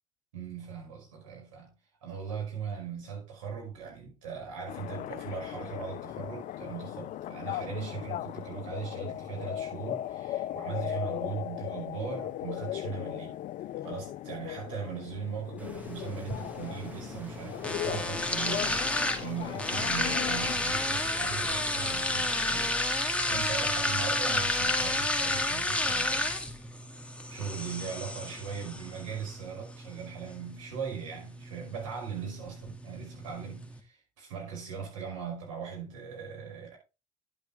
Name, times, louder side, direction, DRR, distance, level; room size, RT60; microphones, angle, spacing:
voice 1, 0.3-1.7 2.0-13.3 13.8-22.8 23.3-26.4 27.3-36.8, right 6 dB, 85° right, 5.2 m, -39 dB
sound 1, 4.7-20.6, left 13 dB, 55° left, 0.5 m, -38 dB
Stream, 15.6-22.8, right 1 dB, 10° right, 2.2 m, -48 dB
sound 2, 15.8-33.8, left 2 dB, 5° left, 2.2 m, -32 dB
10.5 x 8.9 x 3.5 m
hypercardioid pair, 60°, 16 cm